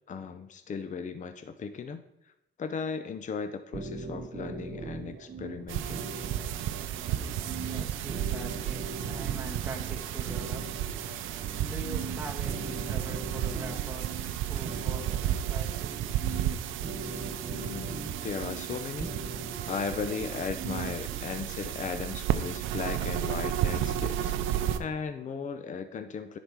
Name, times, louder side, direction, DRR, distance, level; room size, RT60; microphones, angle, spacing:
voice 1, 0.1-2.3 2.6-6.0 17.5-19.1 19.7-26.4, left 5 dB, 40° left, 0.6 m, -37 dB
sound 1, 3.7-21.2, right 4 dB, 40° right, 0.8 m, -40 dB
sound 2, 5.7-24.8, right 11 dB, 90° right, 0.5 m, -33 dB
voice 2, 6.0-18.3, right 2 dB, 10° right, 1.4 m, -45 dB
10.0 x 4.2 x 4.6 m
cardioid pair, 90°, 20 cm